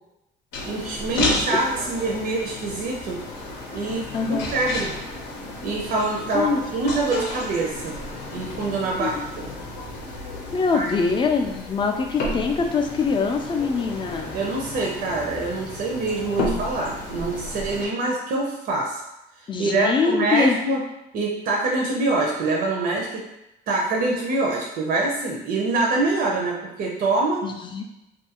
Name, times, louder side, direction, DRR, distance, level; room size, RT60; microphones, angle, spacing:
sound 1, 0.5-17.9, left 2 dB, 80° left, 0.7 m, -32 dB
voice 1, 0.7-3.2 3.7-4.9 5.6-8.0 8.3-9.5 10.7-10.9 14.3-19.0 19.4-20.8 21.1-23.2 23.7-27.5, right 2 dB, 60° right, -1 dB, 0.5 m, -25 dB
voice 2, 4.1-4.5 6.3-6.6 9.0-9.2 10.5-14.3 19.5-20.6 27.4-27.8, left 5 dB, 30° left, 3 dB, 0.4 m, -23 dB
2.6 x 2.4 x 2.8 m, 0.89 s
cardioid pair, 110°, 17 cm